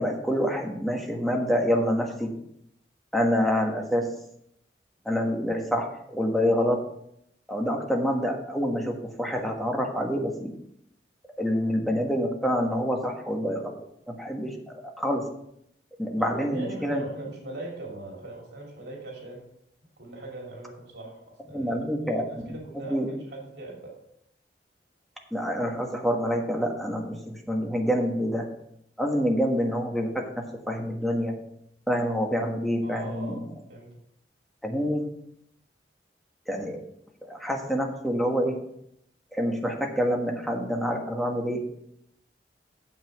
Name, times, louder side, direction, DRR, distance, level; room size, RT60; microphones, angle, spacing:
voice 1, 0.0-2.3 3.1-4.1 5.0-6.8 7.5-10.5 11.4-13.8 14.1-14.5 15.0-15.2 16.0-17.0 21.5-22.5 22.8-23.1 25.3-28.5 29.0-31.3 31.9-33.4 34.6-35.1 36.5-36.8 37.2-38.6 39.3-41.6, equal, ahead, 1 dB, 1.4 m, -27 dB
voice 2, 16.2-19.5 20.0-21.7 22.0-24.0 32.8-33.9, right 2 dB, 70° right, -1 dB, 2.9 m, -40 dB
9.1 x 7.3 x 4.7 m, 0.74 s
head